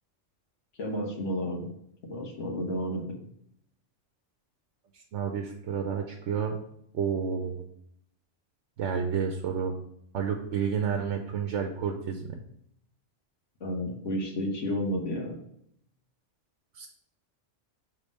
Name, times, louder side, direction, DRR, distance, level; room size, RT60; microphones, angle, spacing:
voice 1, 0.8-1.7 2.1-3.0 13.6-15.4, equal, 85° left, 1 dB, 1.5 m, -31 dB
voice 2, 4.9-6.6 6.9-7.6 8.8-9.8 10.1-12.4 16.8-16.9, right 7 dB, 80° right, 4 dB, 1.0 m, -30 dB
5.3 x 3.7 x 5.3 m, 0.71 s
omnidirectional pair, 1.2 m